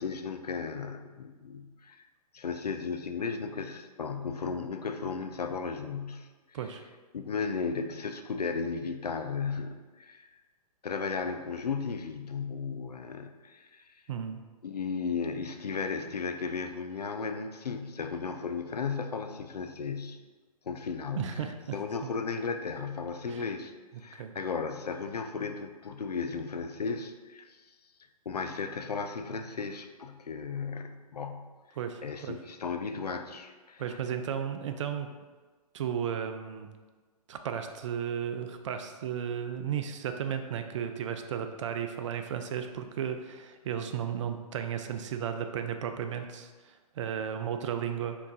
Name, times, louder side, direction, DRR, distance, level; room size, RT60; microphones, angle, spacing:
voice 1, 0.0-2.0 2.3-6.6 7.1-10.3 10.8-13.9 14.6-20.2 20.7-21.4 21.7-23.7 24.0-27.6 28.3-31.5 32.0-34.0, left 5 dB, 85° left, 7 dB, 0.4 m, -35 dB
voice 2, 14.1-14.4 21.1-21.8 22.0-22.1 23.3-23.4 24.2-24.3 31.8-32.4 33.8-35.1 35.7-36.7 37.3-48.2, right 8 dB, 50° right, 7 dB, 0.4 m, -34 dB
3.4 x 2.9 x 3.8 m, 1.3 s
figure-of-eight pair, 120°, 20 cm